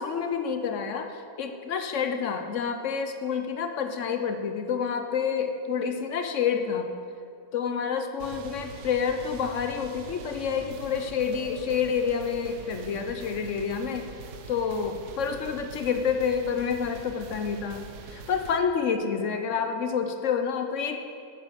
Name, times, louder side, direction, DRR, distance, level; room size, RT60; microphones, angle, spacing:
voice 1, 0.0-6.9 7.5-14.1 14.5-21.0, left 6 dB, 60° left, 6 dB, 0.8 m, -28 dB
sound 1, 8.2-18.6, right 5 dB, 70° right, 1.2 m, -43 dB
8.0 x 6.7 x 7.9 m, 2.4 s
omnidirectional pair, 1.8 m